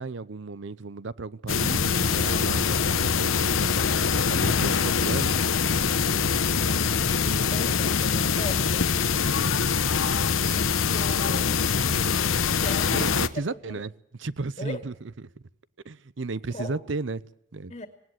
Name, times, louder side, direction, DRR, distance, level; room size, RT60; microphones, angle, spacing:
voice 1, 0.0-5.3 12.9-13.9 14.2-14.9 15.8-17.2 17.5-17.7, right 3 dB, 65° right, 0.7 m, -34 dB
sound 1, 1.5-13.3, left 6 dB, 90° left, 1.0 m, -24 dB
voice 2, 7.5-9.4 10.5-11.8 12.6-13.8 14.6-14.8 16.5-16.8 17.7-17.9, left 2 dB, 35° left, 2.1 m, -39 dB
19.0 x 19.0 x 7.8 m
head